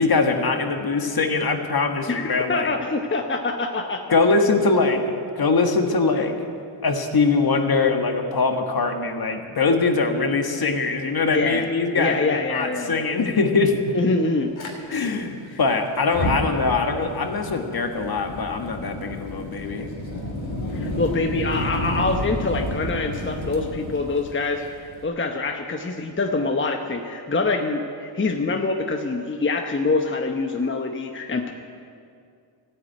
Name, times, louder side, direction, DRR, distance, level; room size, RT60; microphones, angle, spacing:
voice 1, 0.0-2.7 4.1-5.0 5.4-6.4 6.8-13.8 14.9-19.9, left 4 dB, 45° left, 5 dB, 1.7 m, -22 dB
voice 2, 2.1-4.2 11.2-11.7 12.0-13.1 13.9-14.5 15.5-15.6 20.7-31.5, left 3 dB, 25° left, 4 dB, 0.9 m, -25 dB
Fire, 14.6-14.7 16.0-25.0, left 1 dB, 65° left, 2.8 m, -31 dB
13.0 x 9.4 x 9.2 m, 2.4 s
cardioid pair, 70°, 50 cm